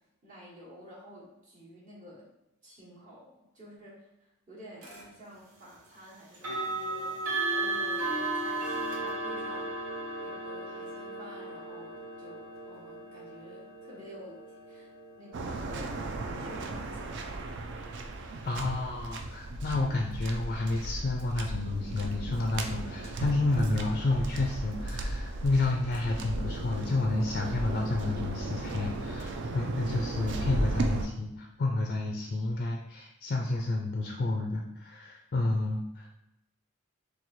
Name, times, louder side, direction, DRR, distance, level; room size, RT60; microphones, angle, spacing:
voice 1, 0.2-2.3 2.6-7.2 7.5-9.7 10.2-14.9 15.2-17.4, equal, 40° right, -8 dB, 1.1 m, -51 dB
sound 1, 4.8-5.0 6.3-17.2, right 2 dB, 90° right, 0.9 m, -36 dB
Waves surf, 15.3-31.1, right 2 dB, 60° right, 0.4 m, -35 dB
voice 2, 18.4-36.1, left 2 dB, 45° left, 0 dB, 0.3 m, -30 dB
3.0 x 2.3 x 4.1 m, 0.87 s
head